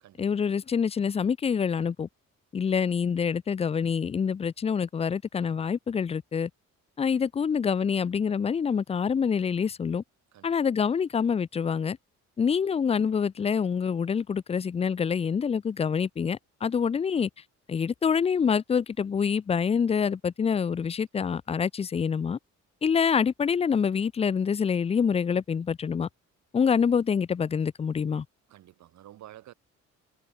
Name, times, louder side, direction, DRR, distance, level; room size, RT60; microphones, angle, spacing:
voice 1, 0.2-2.1 2.5-6.5 7.0-10.0 10.4-12.0 12.4-17.3 17.7-22.4 22.8-26.1 26.5-28.2, left 6 dB, 20° left, 0.3 m, -26 dB
voice 2, 28.5-29.5, right 13 dB, 70° right, 1.0 m, -50 dB
cardioid pair, 90°, 30 cm